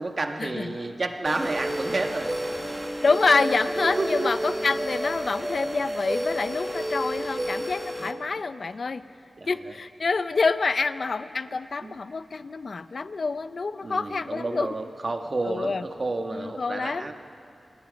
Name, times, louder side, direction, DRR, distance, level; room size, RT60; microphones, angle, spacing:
voice 1, 0.0-2.4 2.7-2.8 3.8-4.4 5.6-5.9 6.3-7.7 8.0-8.1 8.6-8.7 9.4-9.7 11.8-12.0 13.8-17.1, right 2 dB, 45° right, 5 dB, 1.5 m, -31 dB
sound 1, 1.2-8.1, right 1 dB, 20° right, 1.3 m, -31 dB
voice 2, 3.0-9.0 9.5-14.7 15.4-15.8 16.3-17.1, left 4 dB, 60° left, 13 dB, 0.7 m, -27 dB
27.0 x 20.0 x 5.3 m, 2.8 s
wide cardioid pair, 80°, 0 cm